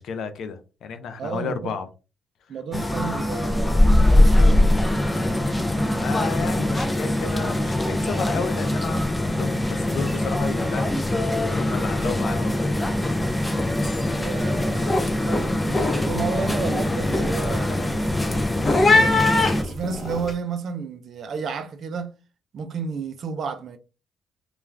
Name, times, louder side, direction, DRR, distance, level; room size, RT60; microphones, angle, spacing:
voice 1, 0.0-1.9 2.5-2.6 5.8-10.9 11.2-12.5, left 5 dB, 70° left, 0.5 m, -32 dB
voice 2, 1.2-1.7 2.5-4.7 14.0-18.1 18.8-19.3 19.6-22.1 22.5-23.8, right 5 dB, 60° right, 0.5 m, -32 dB
sound 1, 2.7-19.6, left 1 dB, 10° left, 0.4 m, -22 dB
sound 2, 13.0-13.3 13.5-14.0 14.4-20.3, left 3 dB, 35° left, 0.7 m, -24 dB
2.3 x 2.3 x 3.2 m
cardioid pair, 90°, 0 cm